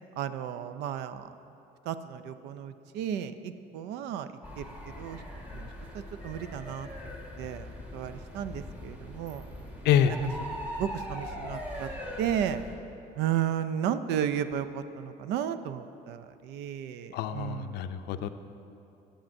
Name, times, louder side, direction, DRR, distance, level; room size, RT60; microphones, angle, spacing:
voice 1, 0.2-1.2 1.9-4.3 4.6-4.7 5.0-5.2 5.5-5.7 5.9-6.9 7.4-9.5 10.1-10.2 10.8-11.9 12.2-12.6 13.2-17.8, right 9 dB, 85° right, 12 dB, 0.4 m, -33 dB
sound 1, 4.4-12.7, equal, 10° right, 1.5 m, -41 dB
voice 2, 17.1-18.3, left 9 dB, 75° left, 10 dB, 0.4 m, -26 dB
13.0 x 8.5 x 2.6 m, 2.8 s
cardioid pair, 110°, 17 cm